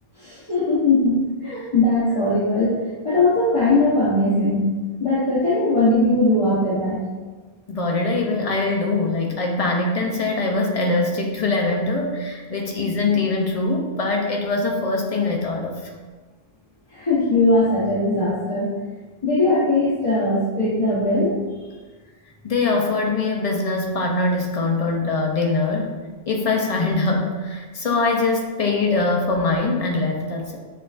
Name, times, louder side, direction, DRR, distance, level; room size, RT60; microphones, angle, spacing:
voice 1, 0.2-2.8 3.0-4.6 5.0-7.0 16.9-18.7 19.2-21.4, left 2 dB, 35° left, -9 dB, 0.9 m, -20 dB
voice 2, 7.7-15.9 22.4-26.0 26.3-30.6, left 3 dB, 50° left, 0 dB, 0.5 m, -22 dB
6.4 x 2.4 x 2.4 m, 1.3 s
omnidirectional pair, 1.0 m